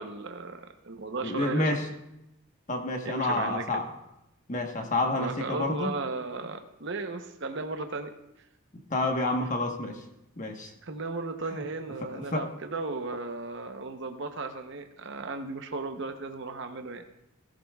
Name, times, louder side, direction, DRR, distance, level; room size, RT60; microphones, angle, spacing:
voice 1, 0.0-1.8 3.0-3.8 5.2-8.1 10.8-17.0, right 3 dB, 55° right, 6 dB, 0.9 m, -36 dB
voice 2, 1.2-1.8 2.7-3.8 4.5-5.9 8.9-10.0 10.4-10.7 11.5-11.6 12.1-12.4, left 2 dB, 35° left, 3 dB, 1.2 m, -29 dB
17.0 x 11.5 x 2.4 m, 0.88 s
head